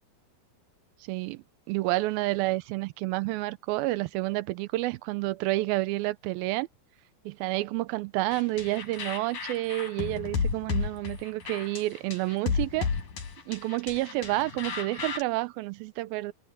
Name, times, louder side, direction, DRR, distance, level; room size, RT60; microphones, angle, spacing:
voice 1, 1.0-6.7 7.3-12.9 13.5-16.3, right 19 dB, 85° right, 2.5 m, -29 dB
sound 1, 8.3-15.2, left 5 dB, 65° left, 5.5 m, -33 dB
omnidirectional pair, 4.2 m